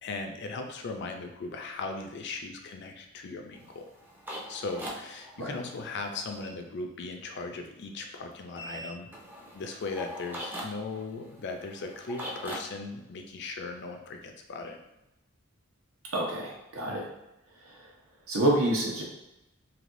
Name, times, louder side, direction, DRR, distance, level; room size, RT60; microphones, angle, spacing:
voice 1, 0.0-3.8 4.5-9.1 9.5-14.8 16.8-17.1, left 3 dB, 55° left, 4 dB, 0.4 m, -38 dB
sound 1, 3.6-6.5 8.6-12.6, equal, 10° right, 0.4 m, -42 dB
voice 2, 16.1-17.1 17.6-17.8 18.3-19.0, right 1 dB, 75° right, -2 dB, 0.9 m, -28 dB
3.3 x 2.7 x 2.5 m, 0.91 s
head